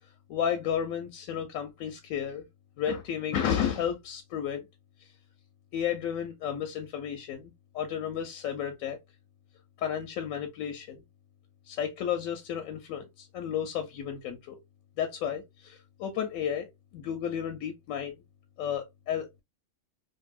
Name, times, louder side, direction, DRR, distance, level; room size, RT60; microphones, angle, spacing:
voice 1, 0.3-2.4 2.8-4.7 5.7-9.0 9.8-11.0 11.7-14.6 15.0-16.7 16.9-18.2 18.6-19.4, left 8 dB, 85° left, 1.0 m, -32 dB
2.7 x 2.5 x 2.3 m
omnidirectional pair, 1.4 m